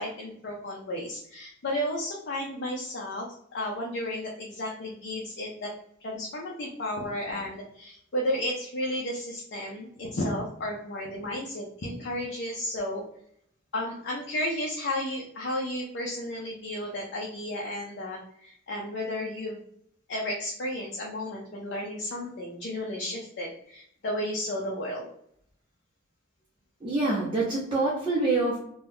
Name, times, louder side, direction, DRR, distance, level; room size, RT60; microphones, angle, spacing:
voice 1, 0.0-5.7 6.0-13.0 13.7-19.6 20.1-25.1, left 1 dB, 60° left, -2 dB, 0.6 m, -33 dB
voice 2, 26.8-28.6, right 2 dB, 25° right, -6 dB, 0.6 m, -26 dB
2.8 x 2.2 x 3.4 m, 0.70 s
head